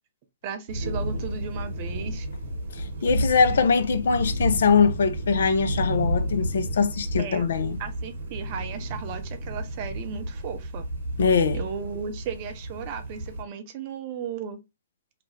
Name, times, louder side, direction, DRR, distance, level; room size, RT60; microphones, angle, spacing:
voice 1, 0.4-2.3 7.2-7.5 7.8-10.9 11.5-14.6, right 7 dB, 40° right, 0.5 m, -35 dB
sound 1, 0.7-13.4, right 1 dB, 65° right, 1.1 m, -31 dB
voice 2, 2.8-7.8 11.2-11.6, left 5 dB, 65° left, 0.4 m, -22 dB
2.4 x 2.1 x 3.1 m
figure-of-eight pair, 115°, 0 cm